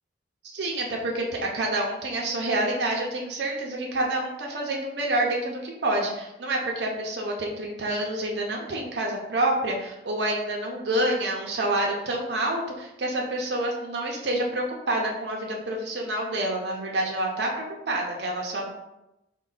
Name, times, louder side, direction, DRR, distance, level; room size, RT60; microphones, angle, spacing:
voice 1, 0.5-18.7, right 1 dB, 65° right, 0 dB, 0.6 m, -28 dB
3.9 x 2.1 x 3.9 m, 0.92 s
head